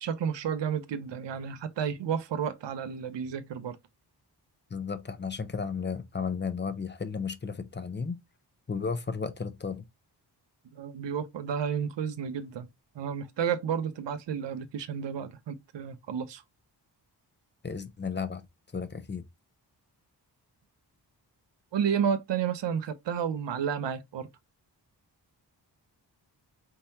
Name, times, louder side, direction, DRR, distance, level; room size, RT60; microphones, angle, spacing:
voice 1, 0.0-3.8 10.7-12.7 12.9-16.4 21.7-24.3, right 7 dB, 90° right, 0.7 m, -31 dB
voice 2, 4.7-8.2 8.7-9.8 17.6-18.5 18.7-19.2, left 5 dB, 25° left, 0.6 m, -34 dB
4.3 x 3.7 x 2.7 m
wide cardioid pair, 110°, 42 cm